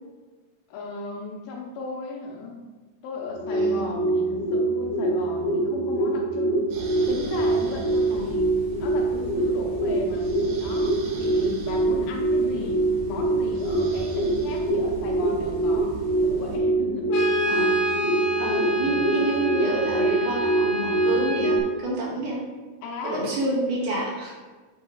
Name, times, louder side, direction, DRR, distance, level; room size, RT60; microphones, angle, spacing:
voice 1, 0.7-2.6 3.0-6.7 7.1-8.5 8.8-10.3 10.6-15.9 16.2-17.2 18.7-19.0 22.8-23.3, left 3 dB, 85° left, 0 dB, 2.6 m, -36 dB
sound 1, 3.2-21.6, right 2 dB, 50° left, 0.8 m, -24 dB
voice 2, 3.5-3.9 8.1-8.3 17.5-17.8 18.4-22.4 23.0-24.3, right 1 dB, 65° right, -6 dB, 2.9 m, -29 dB
sound 2, 6.7-16.6, right 2 dB, 85° right, 2.9 m, -39 dB
Brass instrument, 17.1-21.7, left 1 dB, 65° left, 2.7 m, -28 dB
8.1 x 5.7 x 2.4 m, 1.3 s
omnidirectional pair, 3.9 m